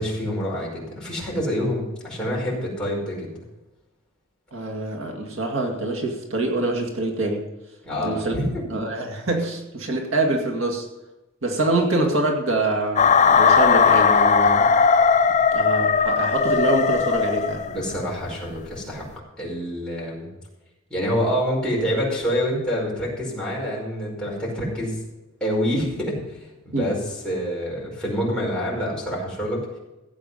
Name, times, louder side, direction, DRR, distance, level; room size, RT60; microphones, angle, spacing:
voice 1, 0.0-3.4 7.8-8.6 17.6-19.1 19.4-20.3 20.9-25.0 25.4-26.2 26.6-29.6, equal, 5° left, -5 dB, 5.1 m, -26 dB
voice 2, 4.5-7.4 8.0-8.3 8.7-10.9 11.4-14.7 15.5-17.6 26.7-27.0, right 2 dB, 70° right, 1 dB, 2.2 m, -25 dB
sound 1, 13.0-17.9, left 6 dB, 35° left, 0.5 m, -18 dB
16.0 x 8.5 x 5.6 m, 1.0 s
head